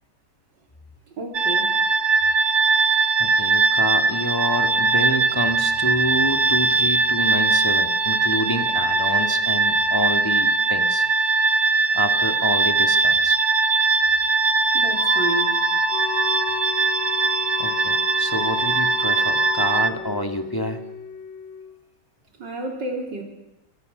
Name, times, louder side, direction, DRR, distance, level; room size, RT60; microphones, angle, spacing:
voice 1, 1.2-1.7 14.7-15.6 22.4-23.2, right 2 dB, 85° right, 2 dB, 4.3 m, -30 dB
sound 1, 1.3-19.9, right 4 dB, 60° right, 1.9 m, -20 dB
voice 2, 3.2-11.1 11.9-13.4 17.6-20.8, equal, 10° left, 6 dB, 2.0 m, -28 dB
sound 2, 14.9-19.8, left 14 dB, 90° left, 1.8 m, -32 dB
Wind instrument woodwind instrument, 15.9-21.8, left 6 dB, 40° left, 2.4 m, -36 dB
28.5 x 24.0 x 6.8 m, 0.97 s
omnidirectional pair, 1.9 m